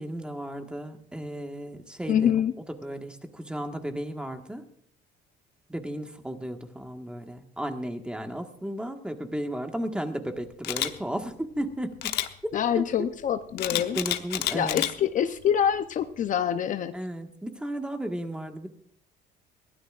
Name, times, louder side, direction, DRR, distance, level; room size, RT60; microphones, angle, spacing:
voice 1, 0.0-2.3 2.8-4.6 5.7-12.1 12.7-12.8 13.7-14.9 16.9-18.7, right 1 dB, 5° right, 5 dB, 1.6 m, -34 dB
voice 2, 2.1-2.5 12.5-14.0 14.5-16.9, left 9 dB, 50° left, 10 dB, 0.7 m, -25 dB
Camera, 10.6-10.9 12.0-12.3 13.6-14.9 15.4-15.6, left 12 dB, 75° left, 1.0 m, -29 dB
22.0 x 15.5 x 2.5 m, 0.65 s
cardioid pair, 110°, 17 cm